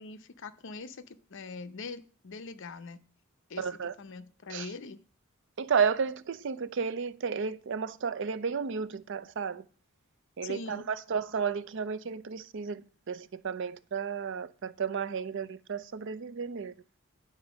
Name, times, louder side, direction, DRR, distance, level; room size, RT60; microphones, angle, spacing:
voice 1, 0.0-3.0 3.5-3.7 4.0-5.0 10.4-10.8, left 4 dB, 60° left, 0.6 m, -42 dB
voice 2, 3.6-3.9 4.5-4.7 5.6-9.6 10.4-16.7, right 6 dB, 60° right, 0.5 m, -32 dB
9.7 x 3.8 x 6.1 m
head